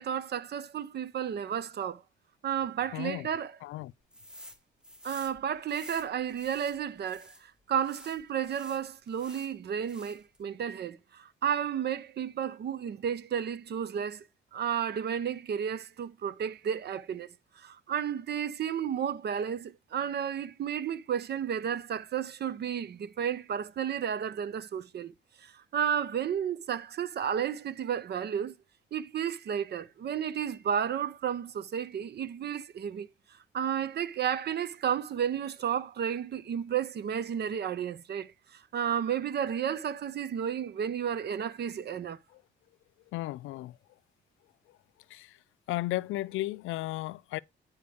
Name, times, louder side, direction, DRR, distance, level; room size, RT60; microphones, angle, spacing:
voice 1, 0.0-2.0 2.4-3.5 5.0-14.3 14.5-25.1 25.4-28.6 28.9-42.2, right 8 dB, 55° right, 0.9 m, -32 dB
voice 2, 2.9-3.3 3.6-3.9 42.3-42.4 43.1-43.8 45.1-45.4 45.7-47.4, left 17 dB, 90° left, 0.5 m, -34 dB
sound 1, 4.1-4.6 4.8-7.4 7.8-9.5 9.8-10.4, equal, 5° right, 1.6 m, -50 dB
9.6 x 4.6 x 3.5 m
cardioid pair, 90°, 20 cm